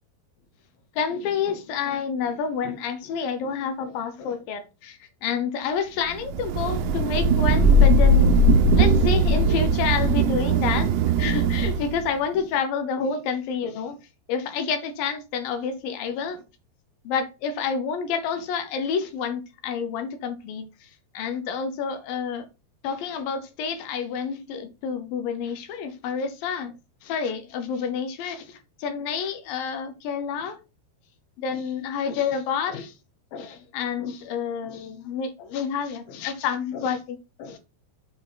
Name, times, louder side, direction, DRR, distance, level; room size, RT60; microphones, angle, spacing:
voice 1, 1.0-14.0 14.3-16.4 17.0-20.9 21.1-22.5 22.8-26.7 27.0-30.6 31.4-32.9 33.3-37.6, left 6 dB, 70° left, 2.4 m, -29 dB
Thunder / Rain, 6.3-12.1, right 1 dB, 90° right, 2.9 m, -19 dB
7.6 x 4.7 x 3.9 m
omnidirectional pair, 5.0 m